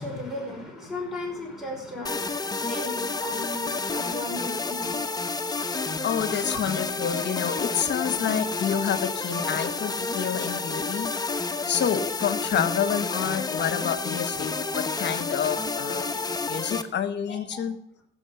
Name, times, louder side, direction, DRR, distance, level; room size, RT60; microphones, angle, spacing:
voice 1, 0.0-5.0 6.5-6.6 17.3-17.7, left 1 dB, ahead, 0 dB, 5.4 m, -36 dB
sound 1, 2.1-16.8, left 3 dB, 20° left, 0.9 m, -30 dB
voice 2, 6.0-11.1 11.6-16.2 16.5-17.8, left 8 dB, 60° left, 11 dB, 1.0 m, -28 dB
15.0 x 6.2 x 6.8 m, 0.72 s
cardioid pair, 90°, 20 cm